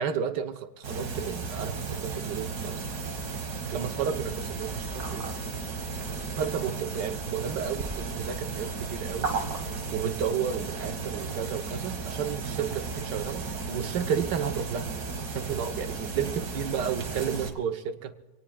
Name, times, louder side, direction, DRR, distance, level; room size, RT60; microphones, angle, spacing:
voice 1, 0.0-2.9 3.7-5.3 6.4-9.4 9.9-14.9 15.3-18.1, right 8 dB, 85° right, 8 dB, 1.6 m, -32 dB
sound 1, 0.8-17.5, right 4 dB, 65° right, 2.2 m, -34 dB
27.5 x 19.0 x 2.3 m, 1.1 s
omnidirectional pair, 1.8 m